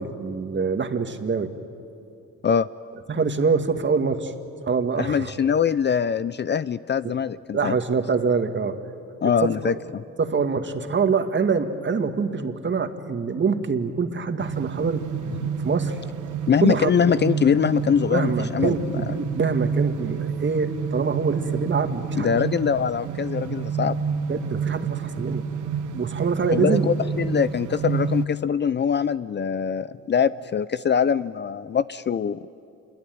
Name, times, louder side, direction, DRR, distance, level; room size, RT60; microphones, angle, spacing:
voice 1, 0.0-1.5 3.1-4.3 4.6-5.3 7.0-7.1 7.5-8.8 9.4-9.7 10.2-15.0 15.6-16.0 16.6-16.9 18.1-22.4 24.3-25.4 25.9-26.9, right 5 dB, 40° right, 7 dB, 2.0 m, -25 dB
voice 2, 5.0-7.8 9.2-10.0 15.4-15.5 16.5-19.0 22.2-24.0 26.5-32.5, left 7 dB, 35° left, 16 dB, 0.5 m, -23 dB
sound 1, 14.4-28.3, right 6 dB, 80° right, 1.3 m, -29 dB
28.0 x 22.0 x 9.4 m, 2.7 s
cardioid pair, 90°, 30 cm